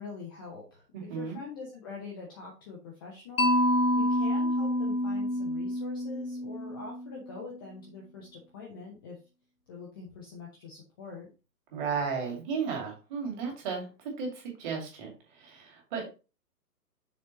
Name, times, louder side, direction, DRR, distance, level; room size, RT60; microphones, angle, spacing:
voice 1, 0.0-3.5 4.0-9.2 9.7-11.3, left 4 dB, 15° left, -2 dB, 0.6 m, -44 dB
voice 2, 0.9-1.4 11.7-13.9 14.2-14.3 14.6-15.1 15.4-16.1, right 5 dB, 30° right, 0 dB, 2.6 m, -34 dB
Mallet percussion, 3.4-7.4, left 1 dB, 60° left, 1.4 m, -28 dB
6.6 x 4.3 x 4.1 m, 0.32 s
figure-of-eight pair, 130°, 48 cm